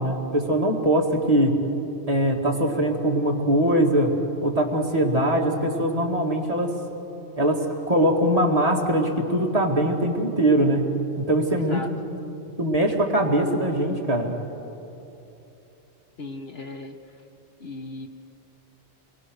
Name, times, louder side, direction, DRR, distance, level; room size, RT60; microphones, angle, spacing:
voice 1, 0.0-1.6 2.1-6.7 7.4-10.9 11.2-11.9 12.6-14.4, right 1 dB, 30° right, -1 dB, 2.4 m, -22 dB
voice 2, 11.6-11.9 16.2-17.0 17.6-18.1, left 3 dB, 55° left, 4 dB, 1.4 m, -36 dB
29.5 x 23.0 x 6.5 m, 2.9 s
omnidirectional pair, 1.3 m